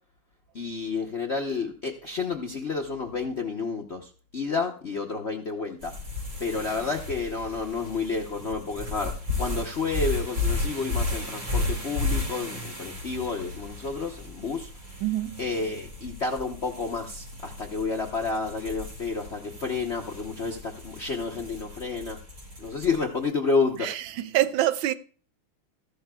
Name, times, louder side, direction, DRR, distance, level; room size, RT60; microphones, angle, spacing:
voice 1, 0.5-5.9 6.4-22.2 22.6-23.9 24.4-24.5, left 4 dB, 50° left, 0.8 m, -30 dB
sound 1, 5.8-23.2, left 2 dB, 50° right, 4.3 m, -34 dB
voice 2, 15.0-15.4 23.8-24.9, right 14 dB, 75° right, 1.3 m, -26 dB
14.5 x 11.5 x 2.3 m
omnidirectional pair, 2.4 m